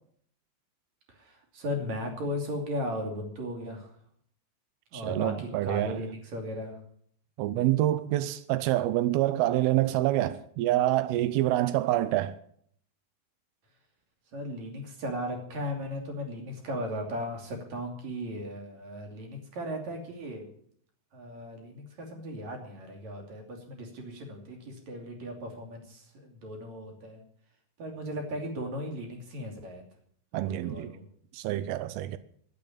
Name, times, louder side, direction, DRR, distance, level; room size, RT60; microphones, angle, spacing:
voice 1, 1.1-3.9 4.9-6.8 14.3-20.4 21.1-27.2 27.8-29.8 30.3-31.0, equal, 45° right, 3.6 m, -36 dB
voice 2, 4.9-6.0 7.4-12.4 30.3-30.9 31.3-32.2, right 14 dB, 85° right, 2.2 m, -27 dB
12.0 x 10.5 x 8.6 m
omnidirectional pair, 5.2 m